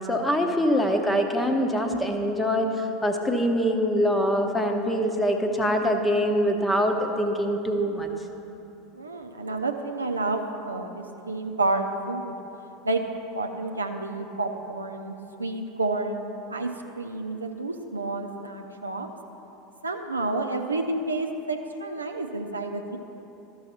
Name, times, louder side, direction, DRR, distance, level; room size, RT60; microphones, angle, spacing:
voice 1, 0.0-8.1, equal, 10° left, 4 dB, 0.9 m, -24 dB
voice 2, 8.9-12.3 12.8-13.0 13.3-15.1 15.4-16.7 17.0-19.1 19.8-23.0, right 2 dB, 85° right, 4 dB, 0.6 m, -30 dB
13.0 x 5.6 x 4.2 m, 2.9 s
figure-of-eight pair, 80°, 0 cm